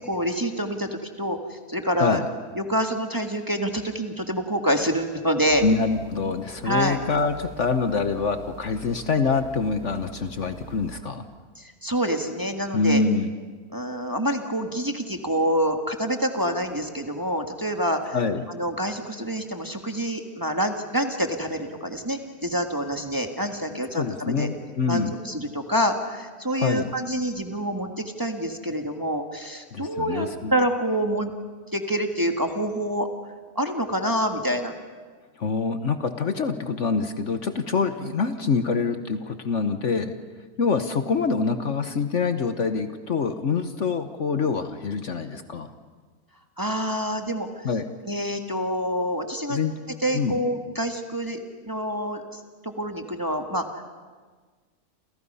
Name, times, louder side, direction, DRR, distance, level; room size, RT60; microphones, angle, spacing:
voice 1, 0.1-0.9 1.2-2.2 2.5-5.6 6.6-7.0 11.6-13.0 13.7-18.2 18.5-24.5 24.9-31.3 31.7-33.1 33.5-34.7 46.6-47.7 48.1-49.6 50.0-51.4 51.6-53.8, equal, 15° right, 4 dB, 1.6 m, -27 dB
sound 1, 5.5-11.0, right 3 dB, 80° right, 2.3 m, -43 dB
voice 2, 5.6-11.2 12.7-13.3 18.1-18.5 23.9-25.1 26.6-26.9 29.7-30.5 35.4-40.1 40.6-45.7 47.6-47.9 49.5-49.7 50.1-50.4, left 4 dB, 55° left, 9 dB, 1.3 m, -25 dB
29.0 x 28.5 x 5.6 m, 1.4 s
omnidirectional pair, 1.6 m